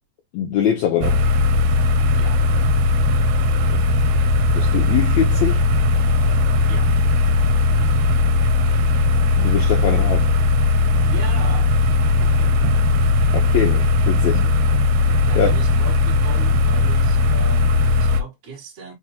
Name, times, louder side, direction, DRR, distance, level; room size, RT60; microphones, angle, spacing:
voice 1, 0.3-1.3 4.6-5.6 9.4-10.3 13.3-14.5 15.4-15.5, left 9 dB, 70° left, 1.8 m, -22 dB
sound 1, 1.0-18.2, left 2 dB, 85° right, 2.3 m, -18 dB
voice 2, 11.0-11.7 12.2-12.7 15.3-18.9, right 2 dB, 25° right, 2.2 m, -37 dB
5.2 x 3.5 x 2.8 m
omnidirectional pair, 3.9 m